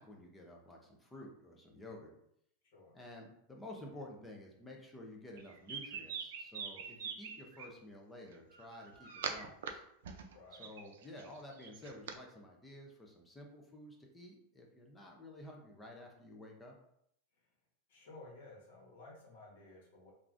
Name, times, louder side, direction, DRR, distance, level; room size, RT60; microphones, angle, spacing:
voice 1, 0.0-2.1 2.9-9.8 10.6-16.7, left 1 dB, 10° left, 0 dB, 0.4 m, -52 dB
sound 1, 5.4-7.7 8.5-9.7 10.0-12.2, right 6 dB, 85° right, 0.4 m, -43 dB
voice 2, 10.3-10.7 17.9-20.1, left 2 dB, 60° left, -2 dB, 1.1 m, -55 dB
3.4 x 2.4 x 2.4 m, 0.72 s
supercardioid pair, 170°, 0 cm